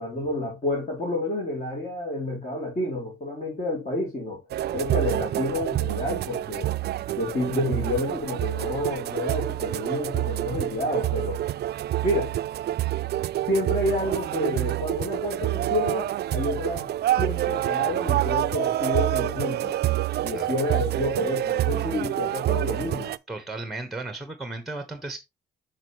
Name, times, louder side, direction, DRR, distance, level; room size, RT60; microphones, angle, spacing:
voice 1, 0.0-4.4 4.7-6.7 7.2-11.4 12.0-12.4 13.5-16.9 17.2-19.7 20.2-23.1, left 1 dB, 40° left, 3.1 m, -29 dB
sound 1, 4.5-23.2, right 14 dB, 55° right, 0.4 m, -27 dB
voice 2, 23.3-25.2, right 2 dB, ahead, 1.2 m, -35 dB
6.3 x 6.3 x 3.1 m
cardioid pair, 90°, 20 cm